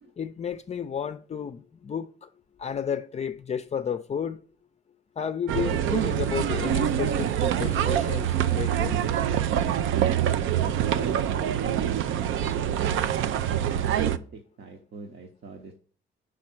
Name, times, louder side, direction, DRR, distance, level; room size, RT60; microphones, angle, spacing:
voice 1, 0.2-2.3 2.6-4.4 5.2-9.0, left 7 dB, 35° left, 0.4 m, -32 dB
sound 1, 5.5-14.2, right 10 dB, 80° right, 0.5 m, -25 dB
voice 2, 10.3-13.2 14.0-15.7, right 4 dB, 60° right, 1.0 m, -42 dB
5.3 x 4.9 x 6.0 m
cardioid pair, 90°, 20 cm